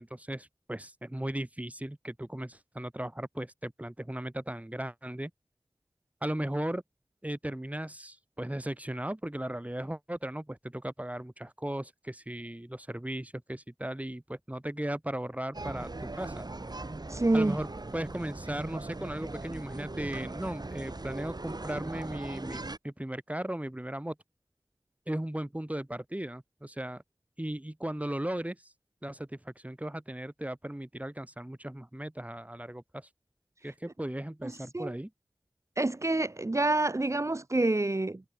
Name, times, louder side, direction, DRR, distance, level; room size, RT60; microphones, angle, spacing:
voice 1, 0.0-5.3 6.2-6.8 7.2-16.4 17.3-22.6 22.8-24.2 25.1-27.0 27.4-28.7 29.0-33.1 33.6-35.1, right 1 dB, 15° right, 3.0 m, -37 dB
sound 1, 15.5-22.8, right 2 dB, 55° right, 5.2 m, -39 dB
voice 2, 17.1-17.6 34.4-34.9 35.8-38.2, right 2 dB, 35° right, 1.1 m, -27 dB
wide cardioid pair, 50°, 8 cm